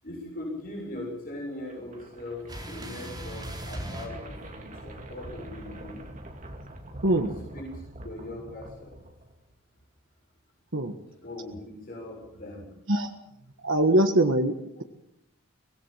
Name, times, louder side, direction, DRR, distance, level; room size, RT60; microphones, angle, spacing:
voice 1, 0.0-6.0 7.2-9.0 11.2-12.7, left 1 dB, 40° left, -3 dB, 7.2 m, -40 dB
sound 1, 1.5-9.6, right 1 dB, 35° right, 2.7 m, -44 dB
sound 2, 2.5-5.0 6.4-7.7, equal, 20° right, 4.4 m, -40 dB
voice 2, 13.6-14.8, right 1 dB, 65° right, 5 dB, 1.6 m, -23 dB
25.0 x 19.0 x 7.5 m, 0.79 s
head